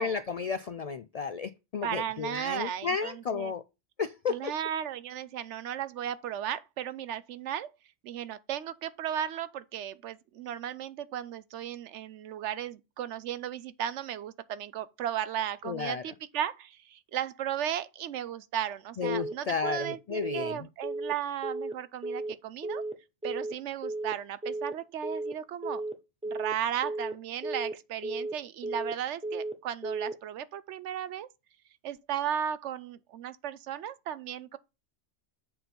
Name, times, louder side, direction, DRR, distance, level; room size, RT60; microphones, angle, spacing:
voice 1, 0.0-3.6 4.0-4.5 15.6-16.0 19.0-20.7, left 5 dB, 80° left, 0.3 m, -33 dB
voice 2, 1.8-3.5 4.3-7.7 8.0-22.8 23.2-25.8 26.2-31.3 31.8-34.6, right 10 dB, 75° right, 0.9 m, -35 dB
Telephone, 19.0-19.3 19.6-19.9 20.2-20.5 20.8-21.1 21.4-21.7 22.0-22.3 22.6-22.9 23.2-23.5 23.8-24.1 24.4-24.7 25.0-25.3 25.6-25.9 26.2-26.5 26.8-27.1 27.4-27.7 28.0-28.3 28.6-28.9 29.2-29.5 29.8-30.1, right 2 dB, 10° right, 0.3 m, -34 dB
7.7 x 4.4 x 5.2 m
omnidirectional pair, 1.2 m